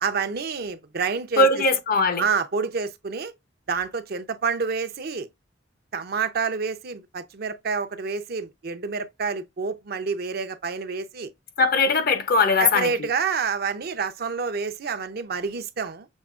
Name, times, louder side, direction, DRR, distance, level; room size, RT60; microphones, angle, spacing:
voice 1, 0.0-1.5 2.2-3.3 3.7-5.3 5.9-11.3 12.6-16.1, right 5 dB, 55° right, 0.6 m, -28 dB
voice 2, 1.4-2.2 11.6-13.1, left 3 dB, 50° left, 0.7 m, -20 dB
6.4 x 2.7 x 2.4 m
head